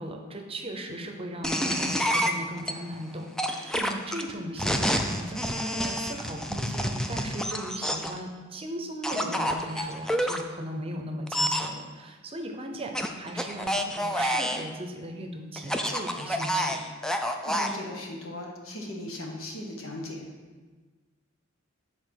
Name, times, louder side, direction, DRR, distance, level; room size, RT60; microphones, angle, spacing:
voice 1, 0.0-16.8, right 1 dB, 30° right, 3 dB, 0.7 m, -37 dB
sound 1, 1.4-2.7 3.4-8.2 9.0-10.4 11.3-11.7 12.9-14.7 15.6-17.7, equal, 5° left, 0.3 m, -28 dB
voice 2, 17.2-20.2, left 1 dB, 85° left, 0 dB, 1.3 m, -38 dB
7.1 x 4.3 x 5.8 m, 1.4 s
head